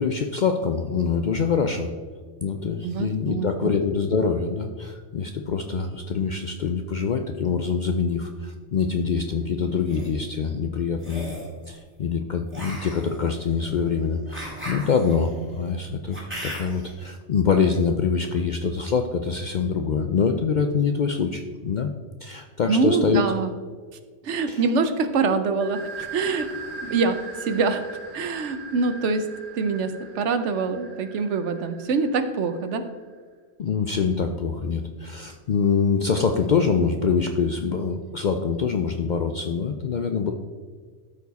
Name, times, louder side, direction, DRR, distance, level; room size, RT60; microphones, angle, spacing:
voice 1, 0.0-1.9 2.4-11.3 11.7-21.9 22.2-23.2 24.5-24.6 33.6-40.3, left 5 dB, 60° left, 6 dB, 0.5 m, -25 dB
voice 2, 2.8-3.7 22.7-23.5 24.2-26.5 26.8-27.8 28.1-29.3 29.5-32.9, right 4 dB, 70° right, 9 dB, 1.0 m, -25 dB
sound 1, 9.6-10.1 11.0-11.5 12.5-16.9, equal, 10° right, 2.1 m, -37 dB
sound 2, 25.6-33.1, right 4 dB, 45° right, 1.3 m, -40 dB
13.0 x 4.7 x 4.1 m, 1.5 s
omnidirectional pair, 1.3 m